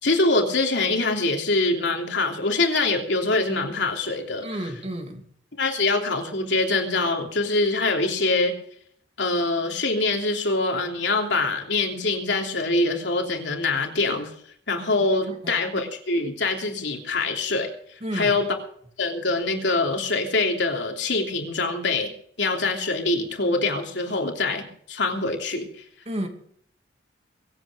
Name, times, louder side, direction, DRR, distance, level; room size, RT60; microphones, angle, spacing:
voice 1, 0.0-4.5 5.6-8.5 9.2-14.3 14.7-17.7 18.1-18.5 19.0-22.1 22.4-25.7, left 3 dB, 75° left, 3 dB, 3.2 m, -24 dB
voice 2, 4.4-5.2 15.4-15.5 18.0-18.3 26.1-26.3, right 1 dB, 35° right, 4 dB, 2.8 m, -31 dB
23.5 x 8.7 x 5.1 m, 0.63 s
head